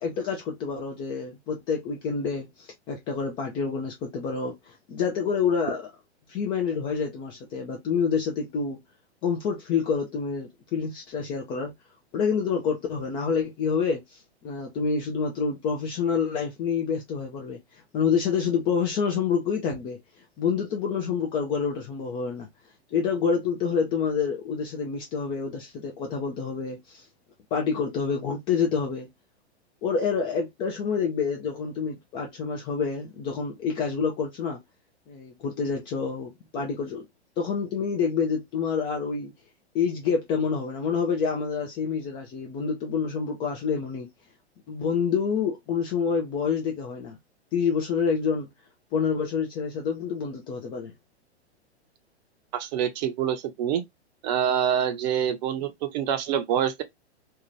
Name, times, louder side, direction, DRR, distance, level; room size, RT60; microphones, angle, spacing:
voice 1, 0.0-5.9 6.3-8.8 9.2-11.7 12.1-14.2 14.4-17.6 17.9-20.0 20.4-22.5 22.9-27.0 27.5-29.1 29.8-34.6 35.1-37.1 37.4-39.3 39.7-44.1 44.7-47.2 47.5-48.5 48.9-50.9, left 6 dB, 15° left, 0.3 m, -27 dB
voice 2, 52.5-53.8 54.2-56.8, right 9 dB, 40° right, 0.6 m, -26 dB
2.7 x 2.2 x 3.0 m
figure-of-eight pair, 110°, 34 cm